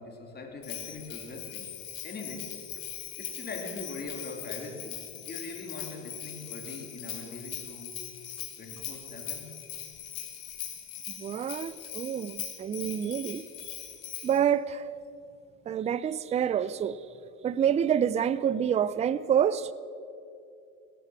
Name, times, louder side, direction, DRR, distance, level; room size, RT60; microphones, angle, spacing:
voice 1, 0.0-8.0 8.6-9.6, left 3 dB, 25° left, 2.9 m, -42 dB
Bell, 0.6-14.4, left 11 dB, 80° left, 2.7 m, -41 dB
voice 2, 11.2-13.4 14.2-14.9 15.7-17.0 17.4-19.7, right 9 dB, 15° right, 0.5 m, -27 dB
17.0 x 13.0 x 6.2 m
hypercardioid pair, 95°, 40 cm